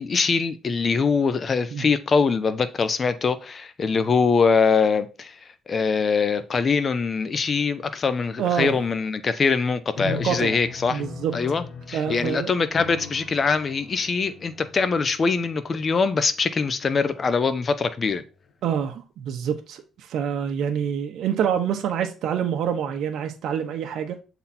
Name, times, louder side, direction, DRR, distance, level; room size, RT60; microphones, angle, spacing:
voice 1, 0.0-5.3 5.7-11.0 11.3-18.2, left 5 dB, 35° left, 0.8 m, -23 dB
voice 2, 8.4-8.8 10.0-10.6 10.9-11.3 11.9-12.5 18.6-24.2, right 8 dB, 75° right, 1.0 m, -26 dB
sound 1, 9.9-18.3, left 7 dB, 55° left, 1.3 m, -40 dB
7.2 x 4.1 x 4.3 m
cardioid pair, 110°, 0 cm